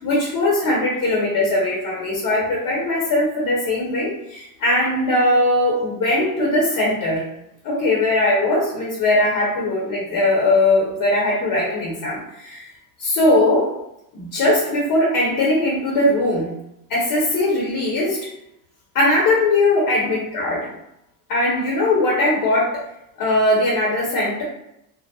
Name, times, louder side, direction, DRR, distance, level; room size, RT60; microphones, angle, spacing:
voice 1, 0.0-7.2 7.6-12.6 13.0-13.7 14.1-16.5 16.9-18.2 18.9-20.7 21.3-22.8 23.2-24.4, left 1 dB, 40° left, -4 dB, 0.9 m, -20 dB
2.3 x 2.0 x 2.7 m, 0.83 s
supercardioid pair, 95°, 49 cm